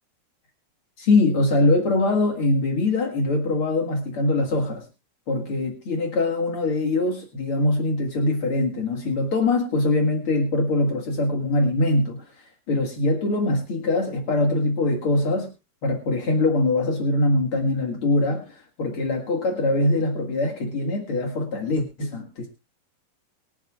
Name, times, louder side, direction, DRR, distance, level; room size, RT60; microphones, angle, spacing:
voice 1, 1.0-4.9 5.3-15.5 15.8-22.5, left 2 dB, 50° left, 1 dB, 1.7 m, -23 dB
25.0 x 9.1 x 2.4 m, 0.28 s
omnidirectional pair, 5.3 m